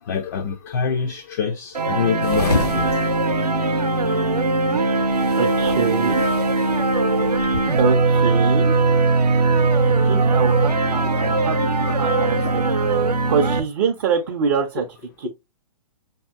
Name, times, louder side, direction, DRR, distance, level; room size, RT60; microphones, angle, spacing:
voice 1, 0.0-2.8 7.5-7.6, left 6 dB, 30° left, 0.4 m, -25 dB
sound 1, 1.7-13.6, right 3 dB, 75° right, 0.6 m, -20 dB
sound 2, 2.2-7.8, left 3 dB, 75° left, 1.2 m, -31 dB
voice 2, 5.4-6.2 7.8-8.8 9.8-11.6 12.0-12.6 12.9-13.0 13.3-14.8 15.2-15.3, right 6 dB, 35° right, 0.5 m, -24 dB
5.3 x 2.7 x 2.3 m
figure-of-eight pair, 120°, 20 cm